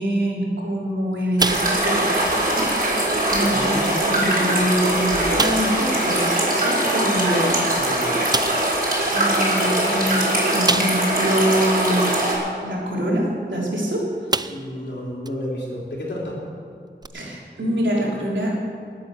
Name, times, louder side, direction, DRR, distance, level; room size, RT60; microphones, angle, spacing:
voice 1, 0.0-7.9 9.1-12.1 12.6-14.3 17.1-18.6, equal, 85° right, -4 dB, 3.6 m, -25 dB
sound 1, 1.4-2.1 2.4-2.6 3.1-3.2 4.1-4.2 4.6-4.7 5.4-5.8 7.5-7.6 8.3-8.7 10.7-11.2 11.7-11.8 13.7-13.8 14.3-14.8 15.3-15.4 17.0-17.1, right 3 dB, 20° right, 0.4 m, -25 dB
sound 2, 1.4-12.4, right 1 dB, 50° right, 4.7 m, -21 dB
voice 2, 3.5-4.0 7.7-8.2 14.5-16.4, left 1 dB, 75° left, -4 dB, 4.0 m, -31 dB
19.5 x 8.6 x 6.5 m, 2.2 s
wide cardioid pair, 65°, 19 cm